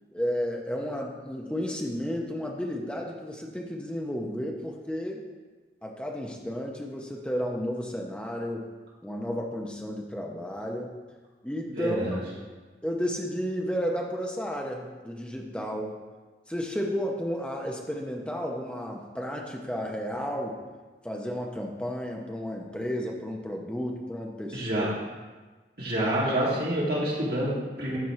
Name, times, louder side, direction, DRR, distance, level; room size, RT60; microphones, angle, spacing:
voice 1, 0.1-5.2 5.8-8.7 9.0-10.9 11.4-12.4 12.8-15.9 16.5-20.6 21.0-24.9, equal, 5° left, 0 dB, 0.7 m, -32 dB
voice 2, 11.7-12.2 24.5-24.9 25.8-28.0, right 1 dB, 60° right, -7 dB, 2.5 m, -27 dB
12.0 x 4.3 x 3.2 m, 1.3 s
head